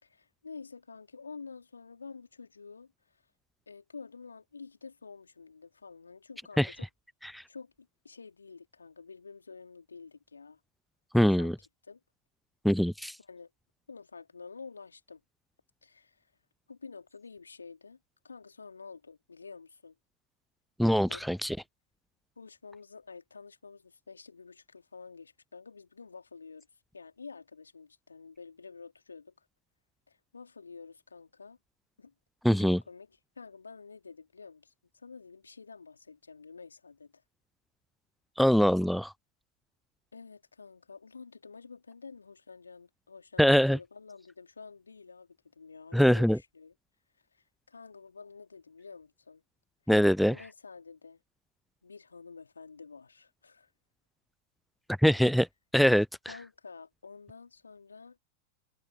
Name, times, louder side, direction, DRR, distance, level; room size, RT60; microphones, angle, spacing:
voice 1, 0.0-3.2 3.7-6.9 7.5-10.6 11.1-11.5 11.8-12.0 13.2-13.5 13.9-15.2 15.8-16.3 16.7-18.0 18.2-19.9 20.9-21.3 22.4-26.7 26.9-29.4 30.1-31.6 32.0-32.1 32.5-37.2 40.1-46.7 47.3-49.4 50.3-51.2 51.8-53.7 56.3-58.2, left 4 dB, 75° left, 3.3 m, -49 dB
voice 2, 11.1-11.5 12.6-13.1 20.8-21.6 32.4-32.8 38.4-39.1 43.4-43.8 45.9-46.4 49.9-50.3 55.0-55.5 55.7-56.1, equal, ahead, 0.4 m, -23 dB
figure-of-eight pair, 90°, 0 cm